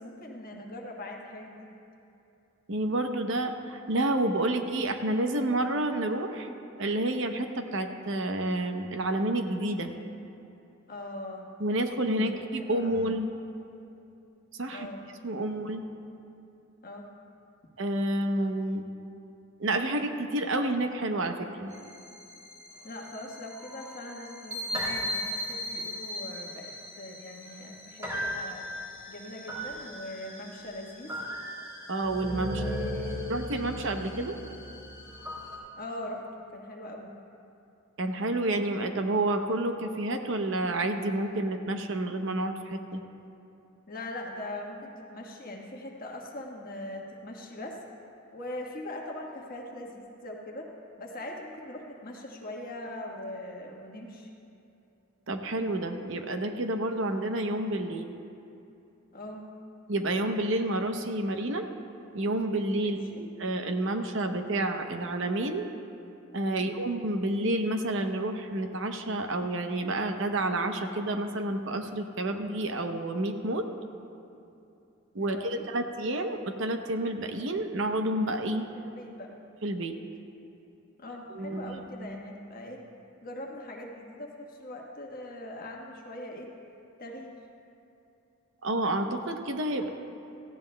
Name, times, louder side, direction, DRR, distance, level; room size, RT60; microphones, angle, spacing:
voice 1, 0.0-1.7 10.9-11.5 12.0-13.0 14.7-15.0 16.8-17.1 22.8-28.6 29.1-31.1 32.5-33.8 35.8-37.1 43.9-47.8 48.3-50.7 51.0-54.3 59.1-59.5 62.8-63.2 66.5-66.7 75.2-75.6 78.7-79.3 81.0-82.8 83.2-86.5 87.0-87.4, left 1 dB, 40° left, 0 dB, 1.3 m, -41 dB
voice 2, 2.7-6.5 6.8-9.9 11.6-13.3 14.6-14.9 15.2-15.8 17.8-18.8 19.6-21.7 31.9-32.6 33.3-34.3 38.0-43.0 55.3-58.1 59.9-61.6 62.1-65.7 66.3-73.7 75.1-78.7 79.6-79.9 81.3-82.1 88.6-89.9, right 1 dB, 60° right, 5 dB, 0.7 m, -29 dB
sound 1, 21.7-35.6, equal, 15° right, 2.7 m, -37 dB
17.5 x 15.0 x 2.2 m, 2.8 s
head